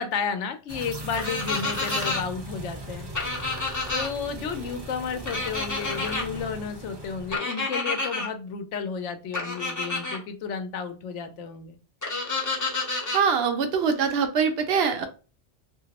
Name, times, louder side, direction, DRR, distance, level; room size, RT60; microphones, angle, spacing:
voice 1, 0.0-3.1 3.9-11.8, left 6 dB, 85° left, 8 dB, 0.9 m, -32 dB
sound 1, 0.7-7.4, right 1 dB, 35° right, 0.4 m, -39 dB
sound 2, 1.2-2.2 3.2-4.1 5.3-6.2 7.3-8.3 9.3-10.2 12.0-13.2, left 3 dB, 20° left, 0.5 m, -29 dB
voice 2, 13.1-15.1, right 6 dB, 65° right, 7 dB, 0.7 m, -23 dB
2.9 x 2.5 x 2.8 m, 0.34 s
omnidirectional pair, 1.2 m